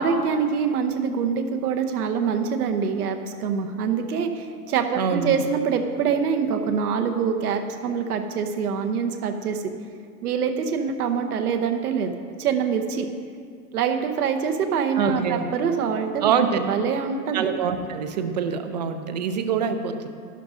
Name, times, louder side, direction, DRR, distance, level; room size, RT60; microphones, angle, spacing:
voice 1, 0.0-9.6 10.2-12.1 12.4-13.1 13.7-17.5, right 6 dB, 70° right, 5 dB, 1.0 m, -25 dB
voice 2, 5.0-5.4 15.0-15.4 16.2-16.6 17.3-20.1, right 7 dB, 30° right, 8 dB, 0.3 m, -25 dB
11.5 x 11.5 x 2.5 m, 2.1 s
hypercardioid pair, 145°, 46 cm